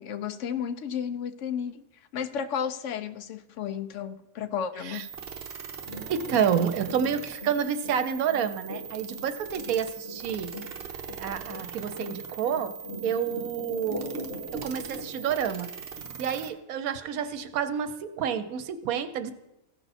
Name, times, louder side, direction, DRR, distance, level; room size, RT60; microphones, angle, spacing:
voice 1, 0.0-1.8 2.1-5.1, left 8 dB, 65° left, 0.8 m, -33 dB
sound 1, 4.9-16.5, right 7 dB, 50° right, 1.0 m, -41 dB
sound 2, 5.8-16.0 16.4-16.5, equal, 40° left, 2.3 m, -40 dB
voice 2, 6.1-10.5 11.2-12.7 13.0-14.1 14.5-15.7 16.2-19.3, right 8 dB, 80° right, 1.2 m, -29 dB
15.5 x 5.7 x 4.1 m
omnidirectional pair, 1.5 m